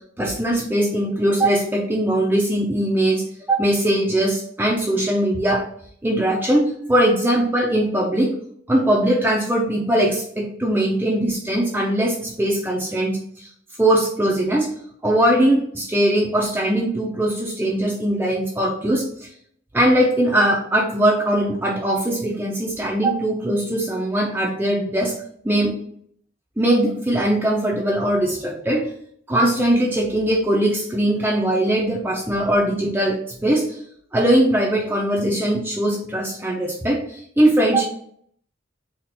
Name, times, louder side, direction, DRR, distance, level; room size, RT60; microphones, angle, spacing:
voice 1, 0.2-5.6 6.0-8.3 8.7-13.5 13.8-14.7 15.0-19.3 19.7-25.1 25.4-25.7 26.6-28.9 29.3-33.6 34.1-37.8, right 1 dB, 10° right, -3 dB, 0.5 m, -20 dB
4.2 x 2.4 x 4.2 m, 0.64 s
head